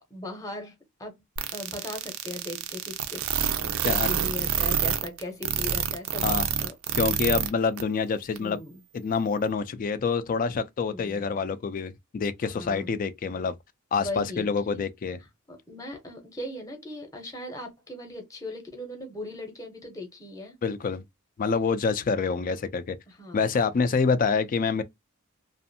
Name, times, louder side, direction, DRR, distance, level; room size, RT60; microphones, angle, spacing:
voice 1, 0.1-1.2 1.5-3.2 3.6-6.4 6.6-6.7 8.4-8.8 12.4-12.9 13.9-14.8 15.5-20.6 23.1-23.4, left 1 dB, 15° left, 0.7 m, -38 dB
sound 1, 1.4-7.5 7.8-7.9 8.4-8.5, right 9 dB, 75° right, 0.4 m, -27 dB
voice 2, 7.0-8.6 8.9-13.6 13.9-15.2 20.6-21.0 21.4-23.0 23.3-24.8, left 5 dB, 40° left, 0.3 m, -26 dB
2.5 x 2.4 x 2.6 m
head